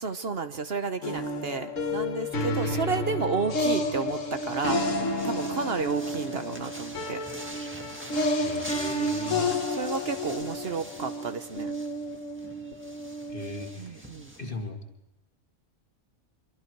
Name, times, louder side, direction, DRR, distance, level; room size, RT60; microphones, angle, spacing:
voice 1, 0.0-4.8 5.2-7.2 9.3-11.7 13.7-14.3, right 5 dB, 55° right, 8 dB, 1.1 m, -32 dB
sound 1, 1.0-13.7, left 1 dB, 80° left, 1.9 m, -31 dB
sound 2, 1.8-14.5, equal, 10° right, 1.7 m, -45 dB
voice 2, 8.3-9.5 13.3-14.1 14.4-14.8, left 2 dB, 45° left, 4 dB, 2.0 m, -38 dB
26.0 x 23.5 x 4.6 m, 0.94 s
omnidirectional pair, 1.3 m